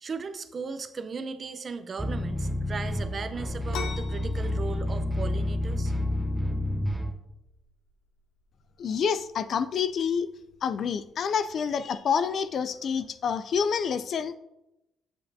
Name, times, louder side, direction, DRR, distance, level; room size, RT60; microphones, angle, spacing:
voice 1, 0.0-5.9, right 4 dB, 40° right, 10 dB, 0.6 m, -37 dB
sound 1, 2.0-7.1, left 1 dB, ahead, 0.7 m, -29 dB
sound 2, 3.7-13.1, left 5 dB, 85° left, 0.7 m, -47 dB
voice 2, 8.8-10.3 10.6-14.3, left 6 dB, 60° left, 13 dB, 0.3 m, -28 dB
7.9 x 6.6 x 2.7 m, 0.91 s
cardioid pair, 90°, 0 cm